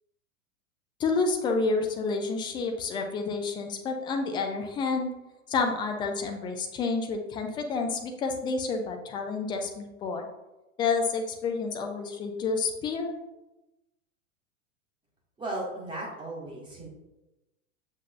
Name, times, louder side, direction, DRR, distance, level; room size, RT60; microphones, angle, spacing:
voice 1, 1.0-5.1 5.5-10.3 10.8-13.2, left 4 dB, 10° left, 4 dB, 0.5 m, -29 dB
voice 2, 15.4-16.9, right 2 dB, 10° right, -4 dB, 2.1 m, -36 dB
7.9 x 7.1 x 2.6 m, 1.0 s
figure-of-eight pair, 100°, 43 cm